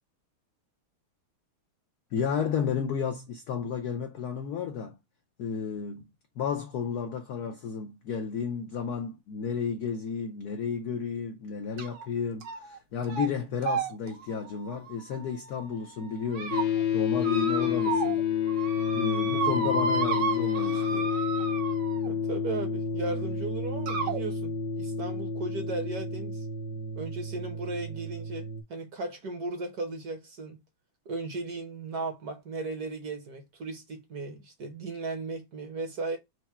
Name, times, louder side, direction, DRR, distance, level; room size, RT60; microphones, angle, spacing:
voice 1, 2.1-5.0 5.4-6.0 6.4-16.6 16.9-18.3 18.9-21.1, left 6 dB, 80° left, 0.8 m, -32 dB
sound 1, 11.8-12.1 12.4-12.8 13.0-13.3 13.6-15.6 16.1-16.6 17.2-18.2 18.5-22.1 23.1-23.2 23.9-24.2, right 5 dB, 70° right, 1.9 m, -32 dB
sound 2, 16.5-28.6, left 6 dB, 60° left, 1.1 m, -30 dB
voice 2, 22.0-26.5 27.0-30.6 31.0-36.2, right 3 dB, 55° right, 1.2 m, -36 dB
4.7 x 2.1 x 4.1 m
omnidirectional pair, 2.3 m